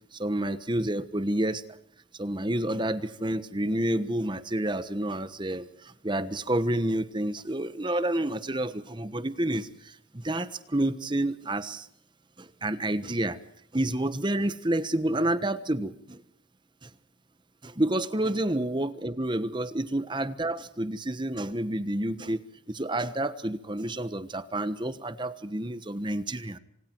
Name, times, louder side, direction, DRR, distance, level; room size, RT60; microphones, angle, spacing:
voice 1, 0.1-1.6 2.1-11.9 12.4-13.4 13.7-16.2 16.8-16.9 17.6-26.6, right 1 dB, 25° right, 13 dB, 1.2 m, -29 dB
29.0 x 26.0 x 4.6 m, 0.70 s
head